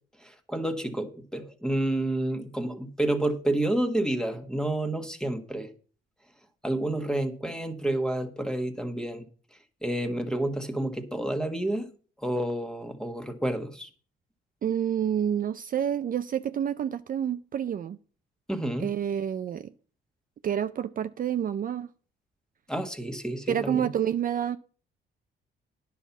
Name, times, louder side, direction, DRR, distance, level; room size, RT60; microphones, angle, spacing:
voice 1, 0.2-5.7 6.6-9.3 9.8-11.9 12.2-13.9 18.5-18.9 22.7-23.9, right 1 dB, 5° left, 1.5 m, -29 dB
voice 2, 14.6-18.0 18.8-19.7 20.4-21.9 23.5-24.6, right 9 dB, 45° right, 0.5 m, -28 dB
10.0 x 5.7 x 7.1 m
cardioid pair, 90°, 20 cm